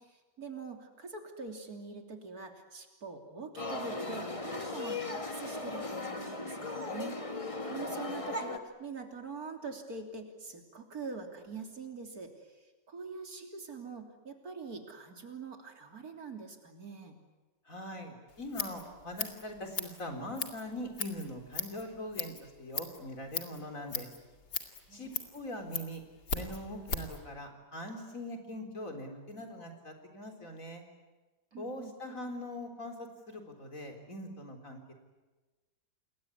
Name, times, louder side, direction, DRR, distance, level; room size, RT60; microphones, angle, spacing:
voice 1, 0.0-12.6 12.9-17.2 24.9-25.3 31.5-31.9, right 4 dB, 55° right, 4 dB, 3.6 m, -44 dB
sound 1, 3.6-8.6, left 2 dB, 20° left, 1.6 m, -37 dB
voice 2, 17.7-24.1 24.9-26.0 26.3-30.8 31.6-34.9, left 1 dB, 50° left, 4 dB, 4.3 m, -42 dB
Scissors, 18.3-27.2, left 5 dB, 70° left, 2.9 m, -39 dB
28.5 x 21.5 x 9.7 m, 1.2 s
omnidirectional pair, 1.8 m